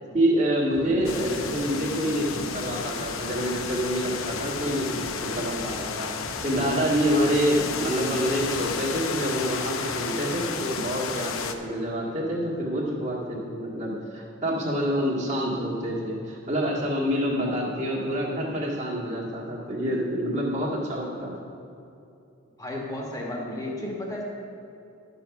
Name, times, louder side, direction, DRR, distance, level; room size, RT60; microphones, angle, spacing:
voice 1, 0.1-6.1 6.4-21.3, equal, 35° right, -4 dB, 1.9 m, -27 dB
sound 1, 0.7-8.7, equal, 60° right, 1.6 m, -45 dB
sound 2, 1.0-11.5, left 5 dB, 80° left, 0.7 m, -32 dB
voice 2, 22.6-24.2, left 1 dB, 15° left, -2 dB, 1.5 m, -34 dB
11.5 x 6.9 x 5.9 m, 2.8 s
head